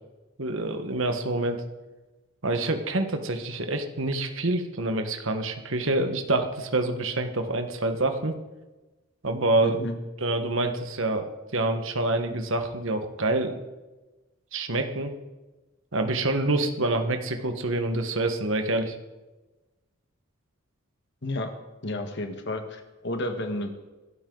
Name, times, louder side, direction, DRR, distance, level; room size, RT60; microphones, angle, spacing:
voice 1, 0.4-1.6 2.4-8.3 9.2-9.8 10.2-11.2 11.5-13.6 14.5-15.1 15.9-19.0, right 2 dB, 65° right, 6 dB, 1.5 m, -26 dB
voice 2, 9.6-10.0 21.2-21.5 21.8-23.7, left 1 dB, 55° left, 6 dB, 1.6 m, -31 dB
22.5 x 12.5 x 4.0 m, 1.1 s
head